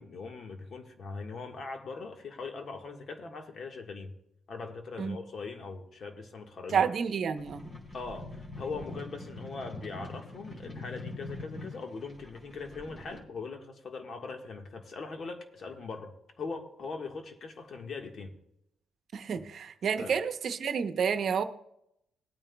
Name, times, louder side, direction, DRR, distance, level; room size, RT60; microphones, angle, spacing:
voice 1, 0.0-4.1 4.5-6.8 7.9-18.3 19.3-19.5 20.0-20.2, left 4 dB, 55° left, 1.5 m, -41 dB
voice 2, 6.7-7.7 19.1-21.4, right 6 dB, 60° right, 0.8 m, -29 dB
sound 1, 7.4-13.2, left 2 dB, 35° left, 3.4 m, -44 dB
19.5 x 9.0 x 2.3 m
cardioid pair, 90°, 0 cm